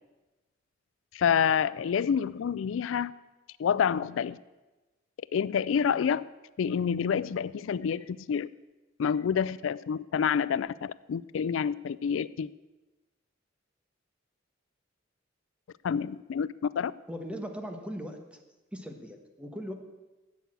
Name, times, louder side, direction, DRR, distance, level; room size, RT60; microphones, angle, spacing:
voice 1, 1.1-3.1 3.6-4.4 5.3-6.2 6.6-8.5 9.0-12.5 15.8-16.5 16.8-16.9, left 7 dB, 80° left, 18 dB, 0.4 m, -28 dB
voice 2, 17.1-18.2 18.7-19.7, equal, 5° right, 5 dB, 1.3 m, -38 dB
12.5 x 8.2 x 7.8 m, 1.1 s
head